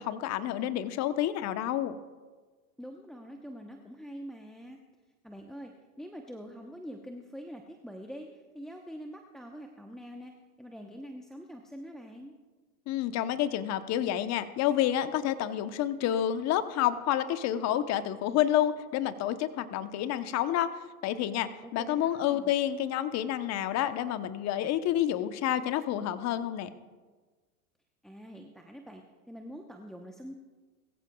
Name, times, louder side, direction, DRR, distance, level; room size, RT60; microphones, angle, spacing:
voice 1, 0.0-2.0 12.9-20.7 21.0-26.7, left 11 dB, 35° left, 11 dB, 1.0 m, -29 dB
voice 2, 2.8-4.8 5.2-5.7 6.0-10.3 10.6-12.3 21.6-22.5 28.0-30.4, equal, ahead, 3 dB, 0.9 m, -45 dB
21.5 x 15.0 x 2.3 m, 1.4 s
hypercardioid pair, 105°, 45 cm